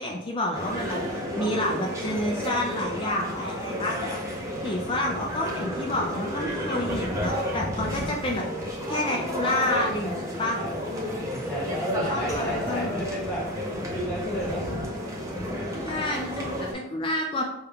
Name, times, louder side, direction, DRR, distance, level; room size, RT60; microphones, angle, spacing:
voice 1, 0.0-10.6 12.1-13.0 15.8-17.4, left 1 dB, 25° left, 0 dB, 0.3 m, -29 dB
sound 1, 0.5-16.7, equal, 15° right, 0.7 m, -31 dB
voice 2, 11.1-13.4 13.9-14.7, equal, 5° left, -9 dB, 1.5 m, -32 dB
5.3 x 2.3 x 3.3 m, 0.94 s
head